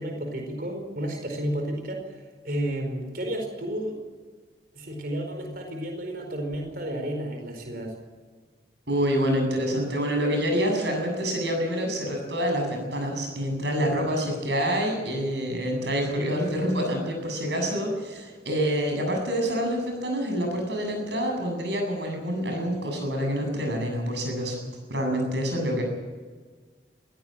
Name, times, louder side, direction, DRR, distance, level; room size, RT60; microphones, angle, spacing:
voice 1, 0.0-2.2 2.4-4.0 4.7-8.0, right 1 dB, 50° right, 4 dB, 4.7 m, -32 dB
voice 2, 8.9-24.6 24.9-25.8, equal, 70° right, 3 dB, 8.0 m, -27 dB
21.0 x 17.0 x 7.6 m, 1.5 s
head